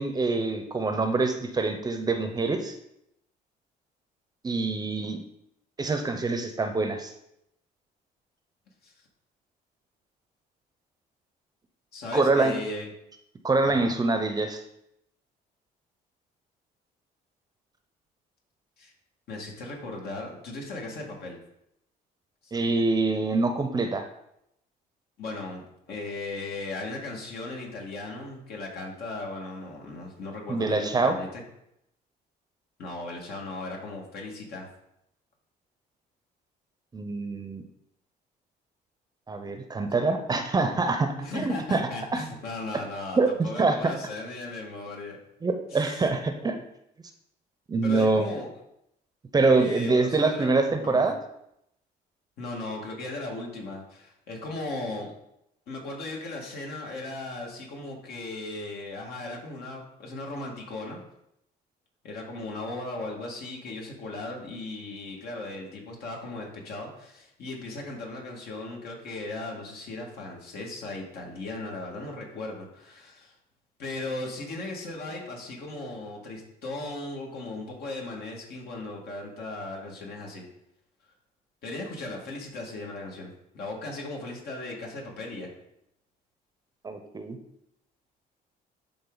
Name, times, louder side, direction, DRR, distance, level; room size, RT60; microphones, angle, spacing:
voice 1, 0.0-2.8 4.4-5.2 5.8-7.1 12.1-12.5 13.4-14.6 22.5-24.1 30.5-31.1 36.9-37.6 39.3-42.2 43.2-43.3 43.6-43.9 45.4-46.6 47.7-48.3 49.3-51.2 86.8-87.4, right 3 dB, 25° right, 7 dB, 0.7 m, -25 dB
voice 2, 11.9-12.9 13.6-13.9 18.8-18.9 19.3-21.4 22.4-22.5 25.2-31.4 32.8-34.7 41.2-45.2 45.7-46.1 47.8-48.5 49.5-50.5 50.8-51.0 52.4-55.1 55.7-61.0 62.0-73.3 73.8-80.4 81.6-85.5, left 2 dB, 70° left, -1 dB, 2.1 m, -37 dB
11.0 x 3.8 x 3.9 m, 0.79 s
cardioid pair, 110°, 17 cm